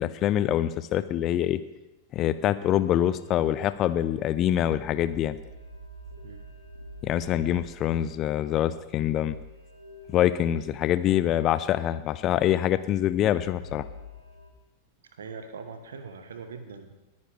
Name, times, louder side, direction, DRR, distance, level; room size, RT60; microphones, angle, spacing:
voice 1, 0.0-1.6 2.1-5.4 7.0-9.4 10.1-13.9, left 11 dB, 35° left, 14 dB, 0.5 m, -25 dB
sound 1, 2.5-14.5, equal, 90° right, 1.4 m, -47 dB
voice 2, 15.1-17.0, right 5 dB, 65° right, 8 dB, 1.3 m, -41 dB
20.5 x 9.5 x 3.5 m, 1.0 s
figure-of-eight pair, 90°, 0 cm